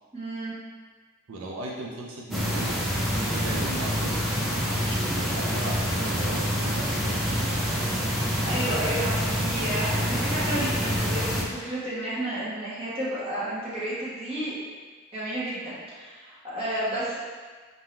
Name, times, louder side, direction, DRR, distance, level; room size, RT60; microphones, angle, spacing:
voice 1, 0.1-0.5 8.4-14.6 15.1-17.2, right 1 dB, 30° right, -9 dB, 1.2 m, -31 dB
voice 2, 1.3-2.7 3.3-8.0, right 2 dB, 90° right, -2 dB, 0.5 m, -37 dB
sound 1, 2.3-11.4, equal, ahead, 0.6 m, -27 dB
3.7 x 2.7 x 4.3 m, 1.4 s
head